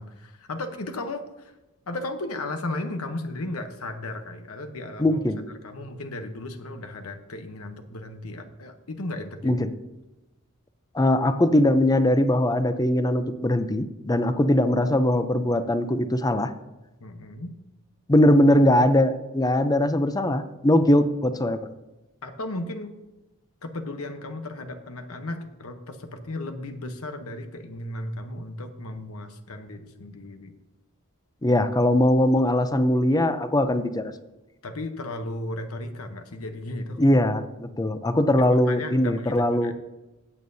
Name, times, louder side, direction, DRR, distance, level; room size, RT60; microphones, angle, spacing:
voice 1, 0.0-1.5 1.9-5.2 5.6-9.6 17.0-17.5 22.2-22.9 23.6-30.5 34.6-37.0 38.4-39.7, left 2 dB, 80° left, 7 dB, 1.0 m, -35 dB
voice 2, 5.0-5.4 9.4-9.7 10.9-16.5 18.1-21.6 31.4-34.1 37.0-39.7, left 1 dB, 15° left, 10 dB, 0.6 m, -21 dB
15.5 x 8.6 x 2.7 m, 1.0 s
head